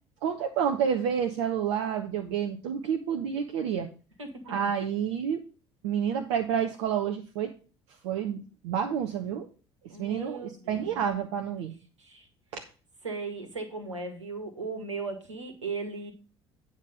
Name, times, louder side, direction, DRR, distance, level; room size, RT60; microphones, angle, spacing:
voice 1, 0.2-3.9 4.5-5.4 5.8-7.5 8.0-9.5 10.0-11.8 12.5-12.6, right 8 dB, 65° right, 4 dB, 1.0 m, -29 dB
voice 2, 9.9-11.1 12.0-12.3 13.0-16.1, right 3 dB, 85° right, 6 dB, 1.7 m, -37 dB
9.5 x 5.3 x 5.1 m, 0.35 s
figure-of-eight pair, 60°, 15 cm